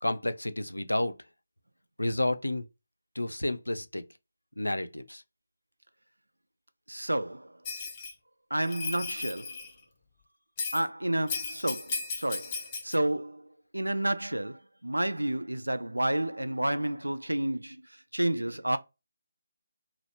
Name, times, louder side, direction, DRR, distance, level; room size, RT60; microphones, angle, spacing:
voice 1, 0.0-1.1 2.0-2.6 3.2-4.0 4.6-5.2, left 1 dB, 85° left, 0.4 m, -30 dB
voice 2, 6.9-7.6 8.5-9.6 10.7-13.5 13.7-17.9 18.1-18.8, right 1 dB, 85° right, 0.3 m, -30 dB
Bell, 7.7-8.1 8.6-9.7 10.6-10.8 11.3-13.0, left 4 dB, 25° left, 0.6 m, -36 dB
2.9 x 2.0 x 2.8 m
figure-of-eight pair, 155°, 0 cm